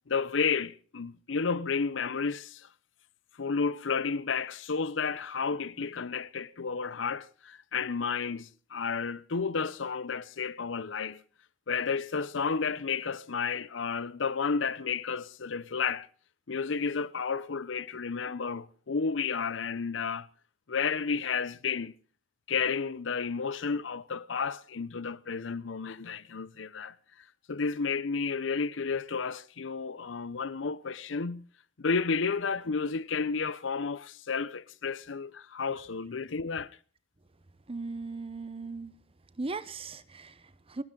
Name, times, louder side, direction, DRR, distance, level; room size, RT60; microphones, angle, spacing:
voice 1, 0.1-2.7 3.4-11.2 11.7-16.1 16.5-20.3 20.7-21.9 22.5-26.9 27.5-31.5 31.8-36.8, left 5 dB, 75° left, 0.7 m, -32 dB
voice 2, 37.7-39.0 39.4-40.8, right 3 dB, 30° right, 0.8 m, -38 dB
29.0 x 12.5 x 3.8 m
head